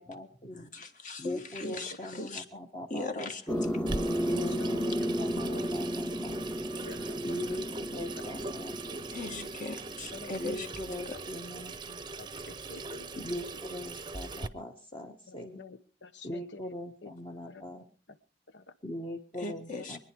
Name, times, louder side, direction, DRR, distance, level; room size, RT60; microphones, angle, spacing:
voice 1, 0.0-0.7 1.2-3.6 4.2-6.4 7.2-9.5 10.4-12.0 13.2-15.6 16.2-17.9 18.8-20.0, left 1 dB, 30° left, 1 dB, 1.3 m, -41 dB
voice 2, 0.5-2.4 2.9-3.4 9.1-10.7 19.4-20.0, left 2 dB, 45° left, 7 dB, 1.9 m, -39 dB
sound 1, 3.5-10.7, equal, 5° left, 0.7 m, -34 dB
Water tap faucet / Sink (filling or washing), 3.9-14.5, right 3 dB, 25° right, 0.7 m, -41 dB
voice 3, 4.2-5.1 5.5-5.6 6.8-7.6 10.1-10.3 10.6-11.2 12.2-13.2 15.3-16.7 17.0-17.1 17.5-17.6 18.5-18.7 19.8-19.9, left 3 dB, 85° left, 12 dB, 1.1 m, -48 dB
24.5 x 10.5 x 4.7 m, 0.36 s
head